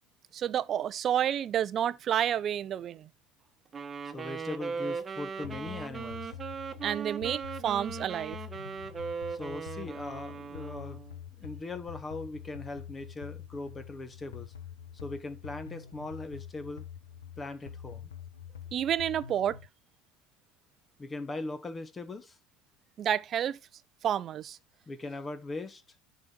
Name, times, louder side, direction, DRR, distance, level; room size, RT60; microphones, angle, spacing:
voice 1, 0.3-3.1 6.8-8.4 18.7-19.6 23.0-23.6 24.0-24.6, right 10 dB, 45° right, 0.7 m, -29 dB
Wind instrument woodwind instrument, 3.7-11.2, right 5 dB, 25° right, 1.3 m, -39 dB
voice 2, 4.1-6.3 9.3-11.0 11.4-14.5 14.9-16.9 17.4-18.1 21.0-22.4 24.9-25.8, left 2 dB, 25° left, 1.4 m, -40 dB
sound 1, 5.4-19.7, left 9 dB, 80° left, 0.9 m, -46 dB
10.5 x 4.2 x 4.4 m
hypercardioid pair, 70°, 0 cm